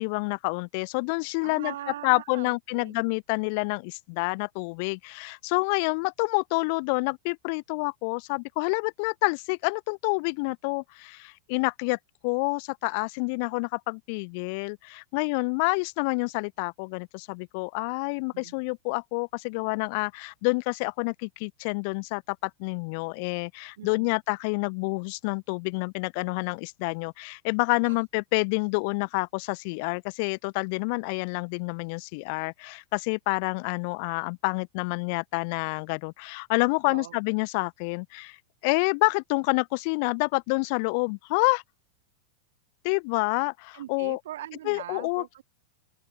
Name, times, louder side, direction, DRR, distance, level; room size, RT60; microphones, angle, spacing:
voice 1, 0.0-1.7 2.0-12.0 12.2-38.4 38.6-41.6 42.8-44.2 44.6-45.2, left 33 dB, 45° left, 0.6 m, -28 dB
voice 2, 1.4-3.0 18.3-18.5 23.8-24.1 36.8-37.2 43.7-45.4, right 13 dB, 60° right, 3.1 m, -41 dB
open air
figure-of-eight pair, 90°, 0 cm